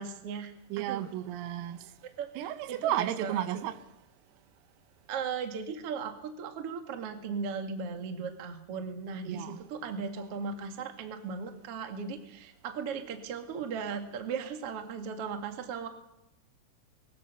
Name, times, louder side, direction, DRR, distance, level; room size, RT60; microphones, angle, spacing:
voice 1, 0.0-1.1 2.2-3.4 5.1-15.9, right 5 dB, 65° right, 1.4 m, -37 dB
voice 2, 0.7-1.8 2.4-3.8 9.3-9.6, right 12 dB, 85° right, 3.8 m, -33 dB
23.0 x 19.5 x 6.8 m
omnidirectional pair, 5.9 m